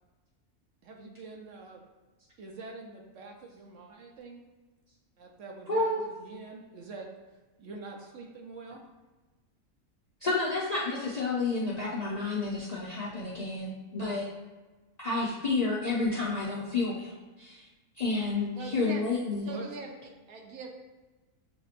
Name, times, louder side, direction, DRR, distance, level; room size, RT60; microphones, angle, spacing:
voice 1, 0.8-1.8 2.4-4.4 5.2-7.1 7.6-8.8 19.4-19.7, right 3 dB, 65° right, 1 dB, 1.0 m, -45 dB
voice 2, 5.7-6.0 10.2-14.3 15.0-17.1 17.4-17.7 18.0-19.5, left 3 dB, 50° left, -7 dB, 0.4 m, -30 dB
voice 3, 18.6-19.0 19.5-19.9 20.3-20.7, right 4 dB, 85° right, 1 dB, 1.2 m, -40 dB
7.2 x 2.8 x 2.5 m, 1.2 s
omnidirectional pair, 1.5 m